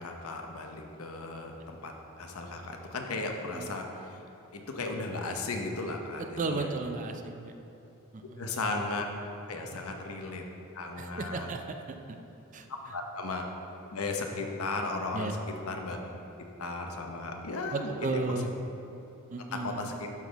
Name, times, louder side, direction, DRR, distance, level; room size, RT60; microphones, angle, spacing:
voice 1, 0.0-4.2 4.5-6.7 8.4-9.1 9.5-10.4 10.7-11.5 12.9-13.4 13.9-15.4 15.7-16.0 16.6-18.1 19.5-20.1, left 3 dB, 80° left, 3 dB, 0.8 m, -35 dB
voice 2, 6.2-7.5 8.1-8.5 11.0-11.6 12.1-12.2 12.5-12.7 15.1-15.3 17.7-18.5 19.3-19.9, right 3 dB, 35° right, 6 dB, 0.4 m, -34 dB
11.5 x 3.9 x 4.0 m, 2.9 s
head